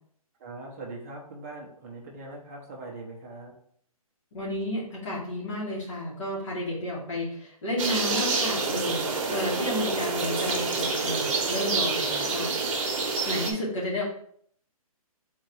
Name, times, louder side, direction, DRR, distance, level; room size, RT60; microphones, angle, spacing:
voice 1, 0.4-3.5, right 2 dB, 25° right, -1 dB, 0.8 m, -41 dB
voice 2, 4.3-12.8 13.3-14.0, left 1 dB, 55° left, -6 dB, 1.8 m, -32 dB
sound 1, 7.8-13.5, right 3 dB, 55° right, 1.1 m, -27 dB
3.9 x 2.7 x 4.5 m, 0.63 s
hypercardioid pair, 165°, 19 cm